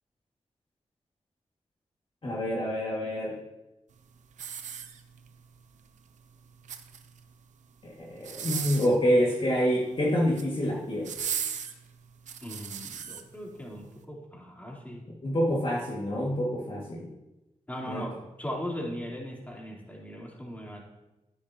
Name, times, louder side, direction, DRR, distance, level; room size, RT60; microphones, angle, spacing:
voice 1, 2.2-3.4 7.8-11.1 15.2-17.1 17.9-18.0, equal, 45° left, -3 dB, 2.0 m, -27 dB
Hissing Cockroach, 4.3-5.4 6.5-7.2 8.2-9.0 10.1-10.5 11.0-13.2 13.8-13.9, right 8 dB, 90° right, 0.7 m, -36 dB
voice 2, 12.4-15.0 17.7-20.8, equal, 15° left, -3 dB, 3.3 m, -38 dB
11.5 x 9.8 x 2.9 m, 0.97 s
cardioid pair, 60°, 12 cm